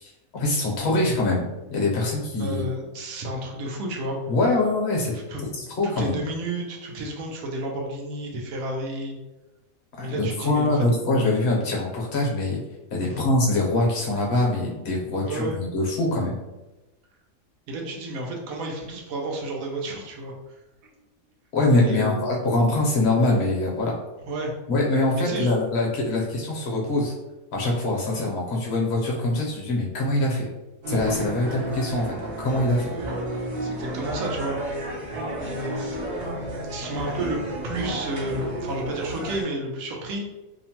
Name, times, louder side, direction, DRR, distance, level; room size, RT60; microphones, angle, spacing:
voice 1, 0.0-2.7 4.3-5.1 5.8-6.2 10.0-12.6 12.9-16.4 21.5-23.9 24.7-27.1 27.5-30.5 30.9-32.9, left 2 dB, 55° left, -2 dB, 0.9 m, -23 dB
voice 2, 2.4-4.2 5.1-5.4 5.8-9.2 10.0-10.9 13.0-13.3 15.2-15.6 17.7-20.6 21.8-22.2 24.2-24.5 25.1-25.5 32.9-33.2 33.6-34.6 35.4-36.4 36.7-40.2, right 1 dB, 85° right, 0 dB, 1.1 m, -31 dB
sound 1, 30.8-39.4, right 1 dB, 55° right, 0.6 m, -32 dB
2.8 x 2.1 x 2.8 m, 1.1 s
omnidirectional pair, 1.4 m